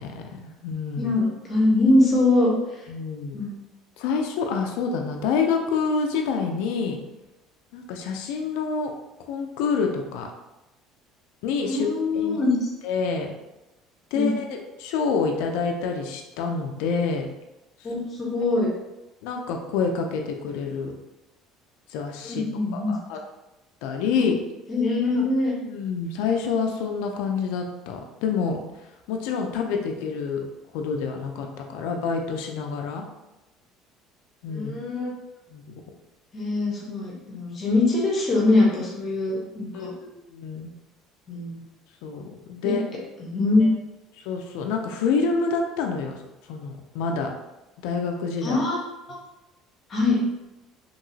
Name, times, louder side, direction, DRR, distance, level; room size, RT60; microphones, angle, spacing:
voice 1, 0.0-1.1 2.9-3.4 4.0-7.0 7.7-8.9 9.3-10.3 11.4-11.9 12.1-12.4 12.8-13.3 14.1-17.3 19.2-20.9 21.9-22.4 22.7-23.2 23.8-24.4 25.6-28.6 29.1-30.4 30.7-33.1 34.4-34.7 35.5-35.7 39.7-40.7 42.0-42.8 44.3-46.2 46.5-47.3 47.8-48.6, left 5 dB, 85° left, 3 dB, 0.4 m, -27 dB
voice 2, 1.0-2.5 3.3-3.5 11.7-12.7 14.1-14.4 17.8-18.7 22.2-22.9 24.7-25.5 34.5-35.1 36.3-39.9 41.3-41.6 42.6-42.7 43.2-43.7 48.4-48.8 49.9-50.2, left 2 dB, 40° left, -3 dB, 1.0 m, -23 dB
2.9 x 2.8 x 2.7 m, 0.99 s
cardioid pair, 110°, 0 cm